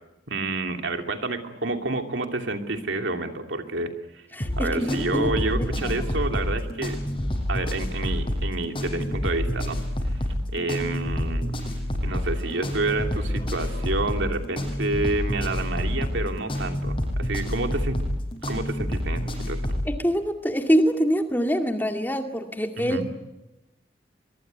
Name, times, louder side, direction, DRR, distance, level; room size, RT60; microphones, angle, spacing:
voice 1, 0.3-4.2 4.6-7.0 7.5-10.3 10.5-11.5 12.0-18.0 18.5-19.6 22.8-23.1, right 2 dB, 80° right, 5 dB, 2.8 m, -29 dB
voice 2, 4.3-5.3 5.8-5.9 19.9-23.1, equal, 10° left, 5 dB, 2.3 m, -24 dB
sound 1, 4.4-19.9, left 1 dB, 30° left, 7.2 m, -28 dB
23.5 x 23.0 x 9.4 m, 0.96 s
head